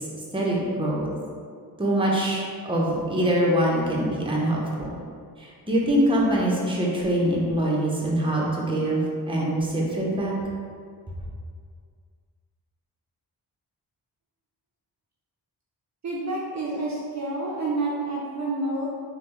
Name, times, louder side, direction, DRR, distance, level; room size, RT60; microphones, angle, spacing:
voice 1, 0.3-1.1 1.8-4.9 5.4-10.3, right 1 dB, 15° right, -4 dB, 0.7 m, -24 dB
voice 2, 16.0-18.9, right 2 dB, 45° right, -4 dB, 0.5 m, -29 dB
3.2 x 2.2 x 3.0 m, 2.1 s
cardioid pair, 55°, 41 cm